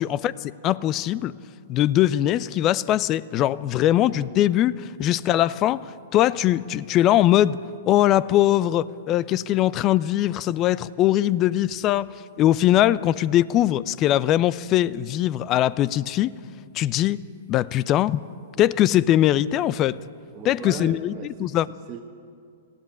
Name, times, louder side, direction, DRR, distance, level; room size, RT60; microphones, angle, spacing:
voice 1, 0.0-1.3 1.7-7.6 7.9-12.1 12.4-16.4 16.7-17.2 17.5-18.2 18.6-20.0 20.4-21.7, left 13 dB, 35° left, 20 dB, 0.6 m, -21 dB
voice 2, 4.0-4.3 5.1-5.2 18.6-18.7 20.3-22.0, right 9 dB, 30° right, 0 dB, 1.3 m, -39 dB
18.5 x 15.5 x 9.8 m, 2.3 s
figure-of-eight pair, 110°, 0 cm